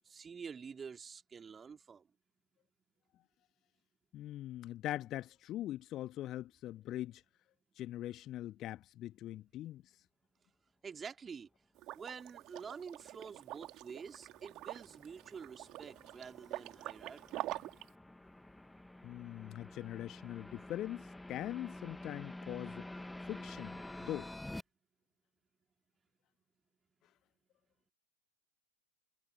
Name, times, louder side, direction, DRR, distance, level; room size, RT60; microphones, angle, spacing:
voice 1, 0.1-2.0 10.8-11.5 11.9-17.5, right 6 dB, 20° right, 3.3 m, -48 dB
voice 2, 4.1-7.2 7.8-9.8 19.0-22.8 23.3-24.3, left 13 dB, 35° left, 1.3 m, -42 dB
Liquid, 11.8-17.9, right 16 dB, 35° right, 2.5 m, -46 dB
sound 1, 13.1-24.6, left 1 dB, 5° left, 1.2 m, -50 dB
figure-of-eight pair, 90°, 0 cm